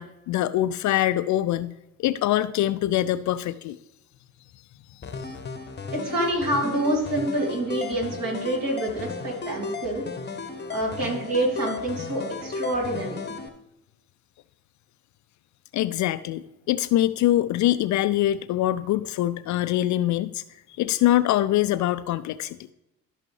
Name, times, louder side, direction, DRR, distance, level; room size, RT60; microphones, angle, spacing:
voice 1, 0.0-3.8 5.2-5.3 15.7-20.4 20.8-22.6, left 13 dB, 45° left, 14 dB, 0.4 m, -24 dB
sound 1, 5.0-13.5, left 4 dB, 25° left, 1.0 m, -35 dB
voice 2, 5.9-10.0 10.7-13.2, right 1 dB, 50° right, -2 dB, 3.4 m, -27 dB
13.5 x 6.0 x 3.2 m, 0.90 s
figure-of-eight pair, 40°, 41 cm